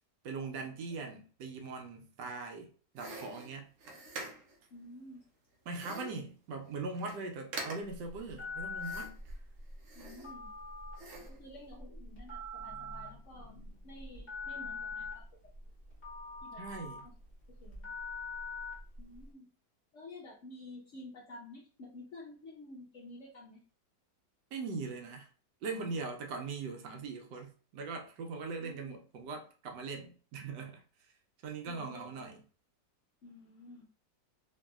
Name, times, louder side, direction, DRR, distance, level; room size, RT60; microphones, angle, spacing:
voice 1, 0.2-2.7 2.9-3.7 5.7-9.2 16.6-17.1 24.5-25.3 25.6-30.8 31.4-32.4, right 4 dB, 80° right, 1.2 m, -41 dB
sound 1, 3.0-4.6 5.7-6.2 6.7-6.8 6.9-7.2 7.5-8.1 8.8-9.3 9.8-10.6 11.0-11.4, right 2 dB, 60° right, 0.9 m, -45 dB
voice 2, 4.7-5.2 5.8-6.1 9.9-10.5 11.3-15.2 16.4-16.6 17.5-17.9 19.0-19.5 19.9-23.6 28.6-28.9 31.7-32.4 33.2-33.9, left 2 dB, 60° left, 0.8 m, -51 dB
Telephone, 7.8-19.3, left 3 dB, 30° left, 0.9 m, -43 dB
3.0 x 2.6 x 2.3 m
omnidirectional pair, 1.9 m